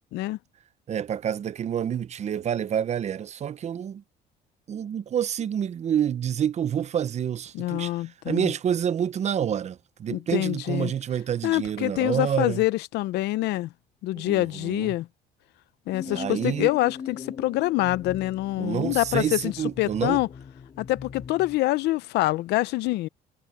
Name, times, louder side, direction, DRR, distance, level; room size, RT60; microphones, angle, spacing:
voice 1, 0.9-4.0 4.7-7.9 8.2-12.6 14.2-14.9 16.0-16.7 18.6-20.2, right 9 dB, 40° right, 0.7 m, -28 dB
voice 2, 7.5-8.5 10.1-10.9 11.4-13.7 14.0-15.1 15.9-20.3 20.8-23.1, left 17 dB, 80° left, 0.6 m, -26 dB
sound 1, 15.9-21.6, left 6 dB, 35° left, 3.3 m, -40 dB
cardioid pair, 110°, 17 cm